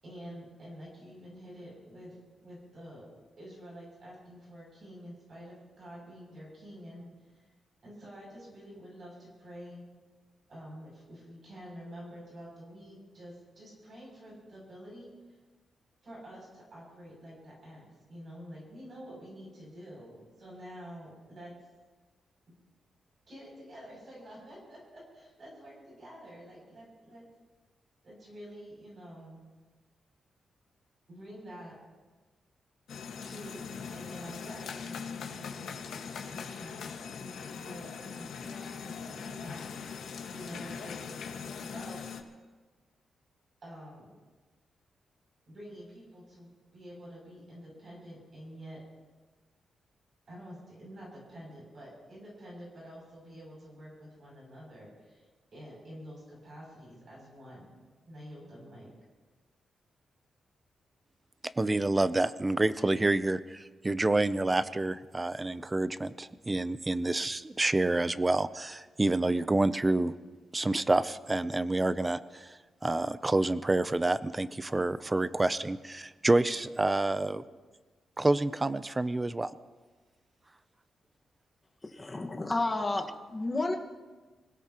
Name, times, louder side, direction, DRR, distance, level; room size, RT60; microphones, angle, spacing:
voice 1, 0.0-2.1 2.4-3.1 3.4-7.4 7.8-9.9 10.5-15.4 16.0-21.5 23.3-27.2 28.0-29.4 31.1-31.8 33.2-33.6 33.9-39.7 40.3-42.0 43.6-44.1 45.5-48.8 50.3-55.2 55.5-57.7 58.0-58.9, equal, 40° right, -4 dB, 7.0 m, -48 dB
sound 1, 32.9-42.2, left 6 dB, 85° left, 1.5 m, -41 dB
voice 2, 61.6-70.1 70.5-77.4 78.2-79.5, right 2 dB, 15° right, 14 dB, 0.5 m, -28 dB
voice 3, 81.8-83.8, left 2 dB, 15° left, 1 dB, 1.5 m, -31 dB
26.0 x 17.0 x 2.9 m, 1.3 s
wide cardioid pair, 175°, 0 cm